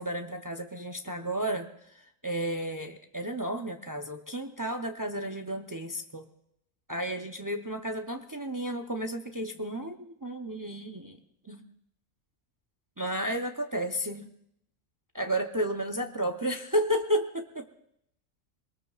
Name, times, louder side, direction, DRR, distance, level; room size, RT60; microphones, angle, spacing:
voice 1, 0.0-6.2 6.9-11.2 11.5-11.7 13.0-14.3 15.1-17.7, right 1 dB, 35° right, 4 dB, 0.3 m, -32 dB
22.0 x 19.5 x 2.4 m, 0.75 s
omnidirectional pair, 1.4 m